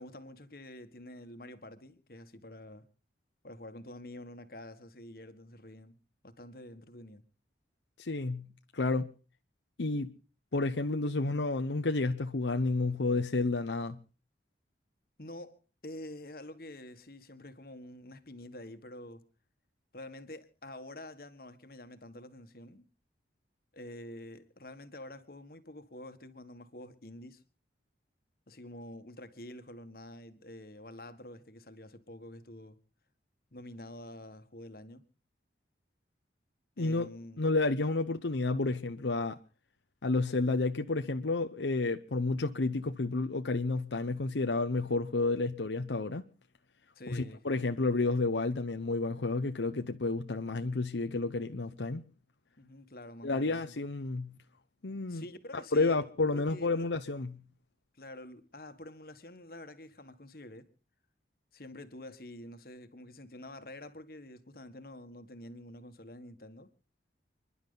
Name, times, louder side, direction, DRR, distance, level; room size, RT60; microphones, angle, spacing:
voice 1, 0.0-2.9 3.4-6.0 6.2-7.2 15.2-19.2 19.9-22.9 23.7-27.4 28.5-32.8 33.5-35.0 36.8-37.4 46.9-47.4 52.6-53.8 55.1-56.9 57.9-60.7 61.5-66.7, left 1 dB, 55° left, 1.6 m, -48 dB
voice 2, 8.0-8.5 8.7-9.1 9.8-10.1 10.5-14.0 36.8-37.1 37.4-39.4 40.0-46.2 47.1-52.1 53.2-54.3 54.8-55.2 55.5-57.3, left 3 dB, 80° left, 0.9 m, -30 dB
29.5 x 11.0 x 3.9 m
head